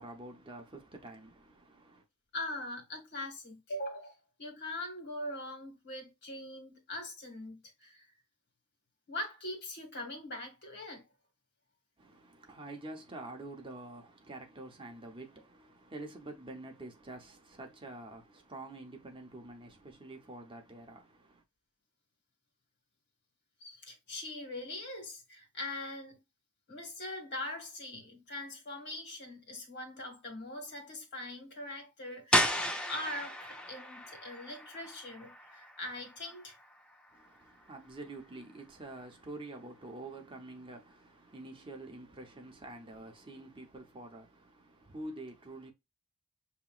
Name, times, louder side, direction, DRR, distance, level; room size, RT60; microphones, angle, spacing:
voice 1, 0.0-2.0 12.0-21.4 37.1-45.7, right 2 dB, 25° right, 0.8 m, -47 dB
voice 2, 2.3-8.0 9.1-11.1 23.6-26.2 26.7-32.5 32.9-36.6, left 1 dB, 50° left, 1.7 m, -42 dB
sound 1, 32.3-38.0, left 1 dB, 5° left, 0.6 m, -35 dB
6.7 x 2.9 x 2.4 m
head